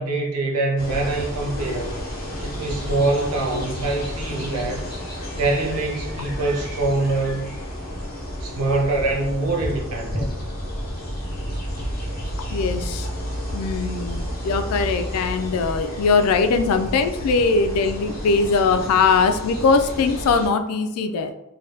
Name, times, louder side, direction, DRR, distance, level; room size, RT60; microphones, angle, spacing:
voice 1, 0.0-2.0 2.4-4.9 5.3-7.5 8.4-10.4, right 2 dB, 85° right, 0.6 m, -24 dB
sound 1, 0.8-20.5, equal, 45° left, 1.0 m, -31 dB
voice 2, 12.5-13.1 13.5-21.3, left 4 dB, 70° left, 0.3 m, -21 dB
3.3 x 2.2 x 2.7 m
head